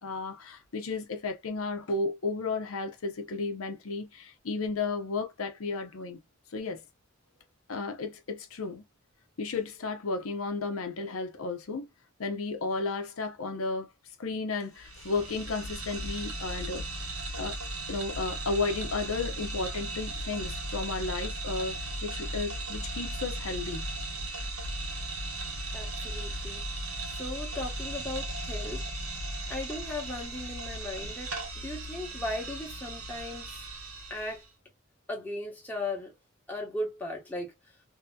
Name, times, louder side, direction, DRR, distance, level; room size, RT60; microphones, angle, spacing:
voice 1, 0.0-6.2 6.5-6.8 7.7-8.8 9.4-11.9 12.2-13.9 14.2-17.1 17.4-17.6 17.9-23.8, left 3 dB, 80° left, 0.7 m, -33 dB
sound 1, 14.7-34.4, right 1 dB, 85° right, 1.1 m, -37 dB
voice 2, 25.7-26.6 27.1-28.8 29.5-33.6 34.1-34.4 35.1-36.1 36.5-37.8, left 2 dB, 10° left, 0.9 m, -37 dB
2.7 x 2.7 x 2.2 m
head